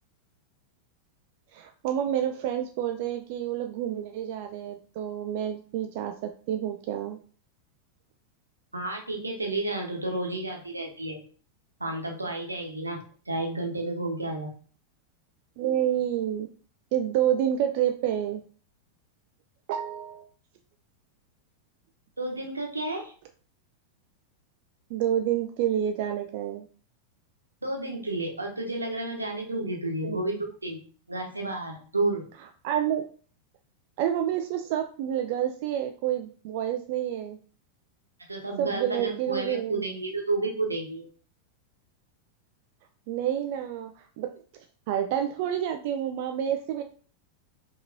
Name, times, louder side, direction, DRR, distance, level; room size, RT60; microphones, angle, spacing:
voice 1, 1.5-7.2 15.6-16.5 16.9-18.4 19.7-20.3 24.9-26.7 30.0-30.2 32.6-33.1 34.0-37.4 38.6-39.8 43.1-44.4 44.9-46.8, right 10 dB, 50° right, 5 dB, 0.3 m, -28 dB
voice 2, 8.7-11.2 11.8-14.5 22.2-23.1 27.6-30.8 31.1-32.3 38.3-41.0, right 2 dB, 80° right, 1 dB, 1.0 m, -31 dB
5.0 x 2.9 x 2.6 m, 0.43 s
figure-of-eight pair, 90°, 0 cm